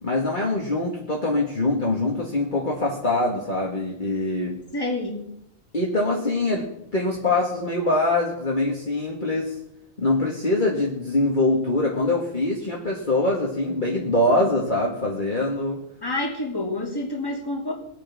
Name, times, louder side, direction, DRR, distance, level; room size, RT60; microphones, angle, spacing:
voice 1, 0.0-4.5 5.7-6.7 6.9-9.5 10.0-15.8, left 2 dB, 35° left, -3 dB, 2.2 m, -23 dB
voice 2, 4.7-5.3 16.0-17.7, left 2 dB, 15° left, -1 dB, 3.0 m, -28 dB
20.5 x 9.1 x 6.1 m, 0.78 s
omnidirectional pair, 1.5 m